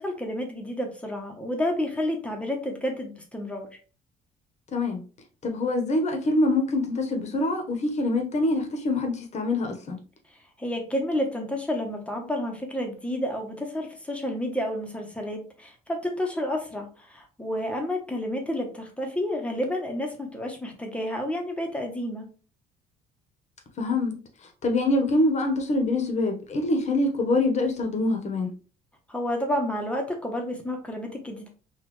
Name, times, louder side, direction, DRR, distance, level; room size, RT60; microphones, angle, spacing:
voice 1, 0.0-3.7 10.6-22.3 29.1-31.5, left 1 dB, 5° left, 1.1 m, -30 dB
voice 2, 5.4-10.0 23.8-24.2 24.6-28.5, left 2 dB, 40° left, 1.1 m, -25 dB
4.2 x 2.6 x 3.1 m
cardioid pair, 110°, 17 cm